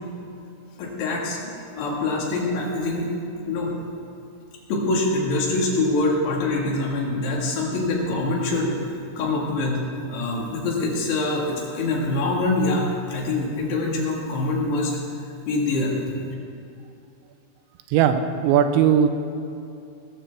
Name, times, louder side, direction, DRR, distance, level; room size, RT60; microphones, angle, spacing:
voice 1, 0.8-3.1 3.5-3.8 4.7-8.7 9.2-9.8 10.1-15.0 15.5-16.0, left 2 dB, 70° left, -1 dB, 3.8 m, -24 dB
voice 2, 17.9-19.1, right 8 dB, 85° right, 8 dB, 3.0 m, -18 dB
19.5 x 13.0 x 3.4 m, 2.6 s
omnidirectional pair, 5.2 m